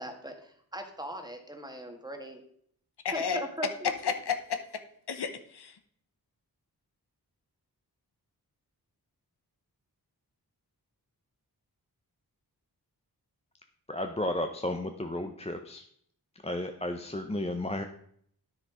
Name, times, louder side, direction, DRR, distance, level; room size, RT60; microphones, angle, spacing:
voice 1, 0.0-2.4 3.1-3.9, equal, 10° right, 4 dB, 1.5 m, -40 dB
voice 2, 3.0-3.4 3.8-4.8 5.1-5.8, left 6 dB, 85° left, 8 dB, 0.9 m, -32 dB
voice 3, 13.9-15.8 16.4-17.8, left 1 dB, 15° left, 5 dB, 0.7 m, -33 dB
9.8 x 6.4 x 5.0 m, 0.65 s
wide cardioid pair, 65°, 39 cm